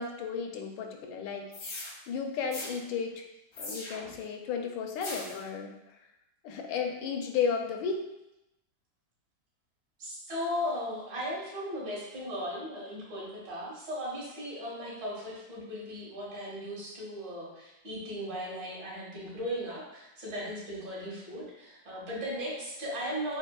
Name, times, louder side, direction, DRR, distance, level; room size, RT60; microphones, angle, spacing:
voice 1, 0.0-1.5 2.1-3.2 3.6-5.7 6.4-8.0, left 6 dB, 85° left, 3 dB, 1.3 m, -33 dB
sound 1, 1.5-1.9 2.5-2.7 3.5-4.2 5.0-5.4, left 2 dB, 60° left, 0.7 m, -40 dB
voice 2, 10.0-23.4, equal, 70° right, -6 dB, 2.1 m, -37 dB
6.4 x 2.8 x 2.3 m, 0.90 s
omnidirectional pair, 2.0 m